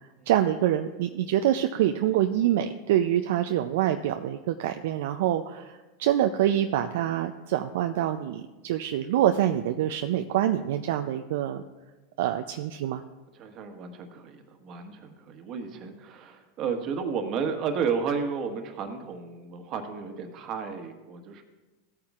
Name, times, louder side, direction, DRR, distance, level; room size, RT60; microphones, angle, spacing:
voice 1, 0.3-11.6 12.2-13.0, right 11 dB, 70° right, 6 dB, 0.4 m, -26 dB
voice 2, 13.4-21.4, right 6 dB, 45° right, 6 dB, 1.3 m, -32 dB
16.0 x 8.8 x 2.4 m, 1.2 s
hypercardioid pair, 105°, 0 cm